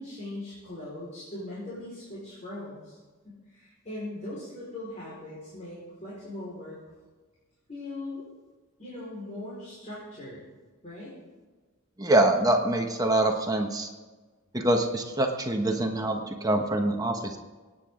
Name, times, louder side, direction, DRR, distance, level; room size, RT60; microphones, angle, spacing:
voice 1, 0.0-3.0 3.2-6.8 7.7-8.2 8.8-10.4 10.8-11.1, left 1 dB, 35° left, -9 dB, 4.8 m, -40 dB
voice 2, 12.0-13.9 14.5-17.4, right 1 dB, 15° right, 3 dB, 1.2 m, -25 dB
25.5 x 9.6 x 3.8 m, 1.3 s
head